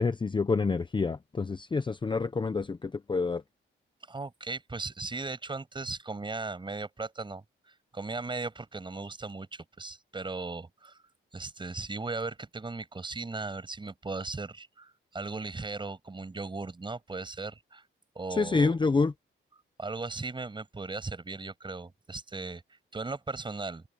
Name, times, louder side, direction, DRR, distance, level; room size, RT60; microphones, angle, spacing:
voice 1, 0.0-3.4 18.3-19.1, left 4 dB, 20° left, 0.7 m, -27 dB
voice 2, 4.1-11.0 11.3-17.8 18.1-18.8 19.8-23.8, right 3 dB, 20° right, 6.5 m, -37 dB
open air
wide cardioid pair, 145°, 21 cm